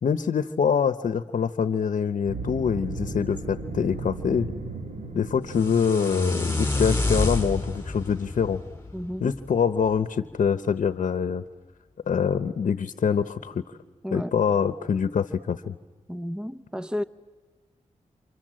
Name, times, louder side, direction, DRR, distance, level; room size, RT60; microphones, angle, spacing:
voice 1, 0.0-4.5 5.1-8.6 9.2-11.4 12.1-13.6 14.1-15.8, left 6 dB, 70° left, 0.9 m, -25 dB
sound 1, 2.3-8.5, right 3 dB, 65° right, 4.5 m, -37 dB
sound 2, 5.5-9.6, left 2 dB, 20° left, 5.3 m, -28 dB
voice 2, 8.9-9.4 14.0-14.3 16.1-17.0, equal, 5° right, 0.9 m, -32 dB
29.0 x 27.0 x 7.6 m
cardioid pair, 60°, 13 cm